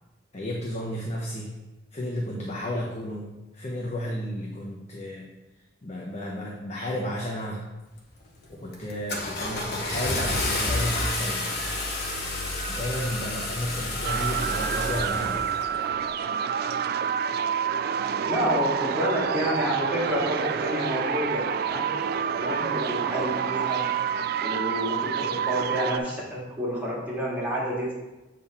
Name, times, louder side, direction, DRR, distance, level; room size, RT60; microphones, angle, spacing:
voice 1, 0.3-1.5 1.9-3.3 3.5-5.3 5.8-7.6 8.5-11.4 12.7-15.4, equal, 40° left, -3 dB, 0.9 m, -32 dB
Car / Engine starting, 7.9-8.3 8.7-15.7, left 2 dB, 60° left, 1.2 m, -30 dB
sound 1, 14.0-26.0, right 7 dB, 55° right, 0.3 m, -28 dB
voice 2, 18.3-21.8 22.4-23.9 24.4-27.9, equal, 10° right, -7 dB, 2.1 m, -29 dB
7.6 x 3.9 x 4.2 m, 1.1 s
head